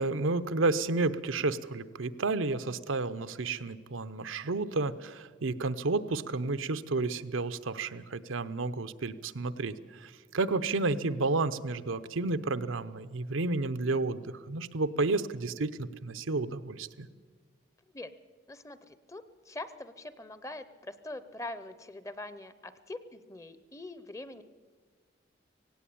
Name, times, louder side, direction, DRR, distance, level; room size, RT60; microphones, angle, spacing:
voice 1, 0.0-17.1, right 3 dB, 85° right, 12 dB, 0.8 m, -31 dB
voice 2, 18.5-24.4, left 2 dB, 15° left, 13 dB, 0.7 m, -43 dB
17.5 x 17.5 x 8.6 m, 1.5 s
head